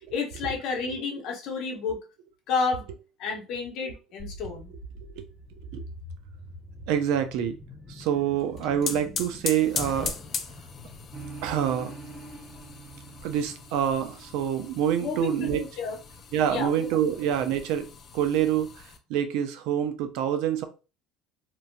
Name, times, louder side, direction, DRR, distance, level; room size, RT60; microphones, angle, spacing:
voice 1, 0.1-2.0 2.5-2.9 3.2-4.7 15.0-16.0 16.5-16.9, left 5 dB, 60° left, 0.8 m, -31 dB
sound 1, 4.2-11.1, equal, ahead, 0.7 m, -45 dB
voice 2, 6.9-7.6 7.9-10.1 11.4-11.9 13.2-15.6 16.3-17.9 18.1-18.7 19.1-20.7, right 9 dB, 75° right, 0.5 m, -26 dB
sound 2, 8.4-19.0, left 6 dB, 35° left, 0.4 m, -39 dB
sound 3, 11.1-16.7, right 3 dB, 55° right, 0.9 m, -46 dB
3.0 x 2.6 x 2.2 m
cardioid pair, 135°, 0 cm